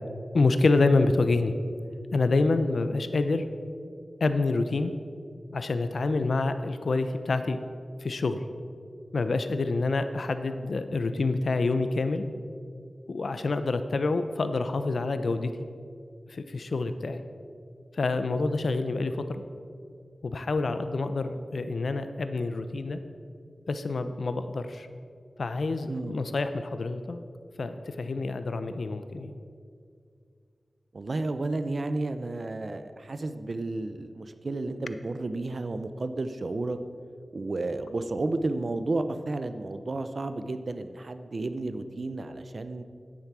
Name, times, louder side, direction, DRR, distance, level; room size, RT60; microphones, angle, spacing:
voice 1, 0.3-1.5 2.1-3.5 4.2-4.9 5.5-7.6 8.0-8.4 9.1-12.3 13.1-15.5 16.3-17.2 18.0-19.4 20.2-23.0 23.7-24.9 25.4-27.2 27.6-29.3, left 3 dB, 80° left, 10 dB, 0.7 m, -27 dB
voice 2, 25.9-26.2 30.9-36.8 37.3-42.8, right 2 dB, 55° right, 10 dB, 0.7 m, -32 dB
10.0 x 9.3 x 6.1 m, 2.3 s
wide cardioid pair, 90°, 0 cm